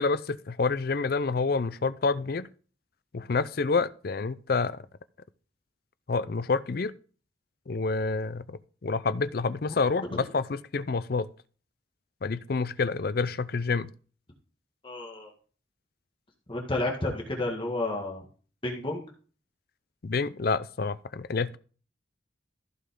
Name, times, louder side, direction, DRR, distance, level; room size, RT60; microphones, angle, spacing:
voice 1, 0.0-2.5 3.1-4.8 6.1-6.9 7.7-11.3 12.2-13.9 20.0-21.6, left 4 dB, 50° left, 0.5 m, -28 dB
voice 2, 14.8-15.3 16.5-18.3 18.6-19.0, left 2 dB, 25° left, 1.7 m, -31 dB
14.5 x 5.6 x 3.7 m
head